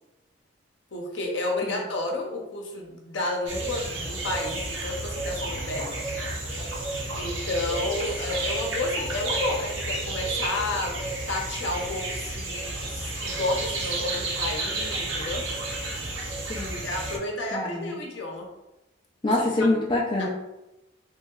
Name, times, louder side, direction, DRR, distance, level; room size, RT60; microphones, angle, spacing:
voice 1, 0.9-5.9 7.2-15.4 16.8-18.5 19.3-19.5 20.2-20.3, left 2 dB, 70° left, 0 dB, 0.6 m, -31 dB
sound 1, 3.5-17.2, right 2 dB, 80° right, 0.6 m, -31 dB
voice 2, 16.5-16.8 17.5-18.0 19.2-20.3, left 2 dB, 25° left, -3 dB, 0.3 m, -25 dB
3.0 x 2.7 x 2.3 m, 0.94 s
head